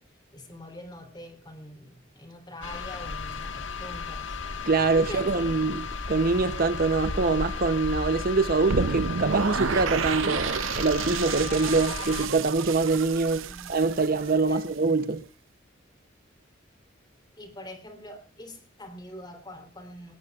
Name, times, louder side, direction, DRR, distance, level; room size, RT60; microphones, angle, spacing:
voice 1, 0.3-4.4 5.0-5.7 13.4-13.7 14.5-14.7 17.4-20.1, left 1 dB, 20° left, 3.4 m, -44 dB
sound 1, 2.6-12.3, left 4 dB, 70° left, 1.6 m, -34 dB
voice 2, 4.7-15.2, right 3 dB, 50° right, 0.8 m, -24 dB
sound 2, 8.7-14.7, right 6 dB, 90° right, 0.6 m, -31 dB
21.0 x 19.5 x 2.4 m
head